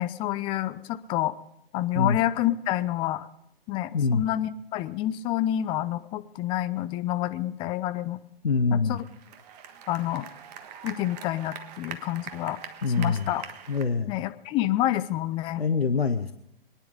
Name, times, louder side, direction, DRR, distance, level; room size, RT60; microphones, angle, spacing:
voice 1, 0.0-1.3 1.7-3.3 3.7-8.2 8.7-9.0 9.9-10.3 10.8-12.6 13.0-13.4 14.1-15.6, left 13 dB, 15° left, 12 dB, 0.5 m, -28 dB
voice 2, 3.9-4.2 8.4-9.0 12.8-13.3 13.7-14.2 15.6-16.3, left 4 dB, 85° left, 9 dB, 0.9 m, -24 dB
sound 1, 8.9-13.8, right 8 dB, 40° right, 1.4 m, -43 dB
23.0 x 10.0 x 5.0 m, 0.81 s
figure-of-eight pair, 115°, 30 cm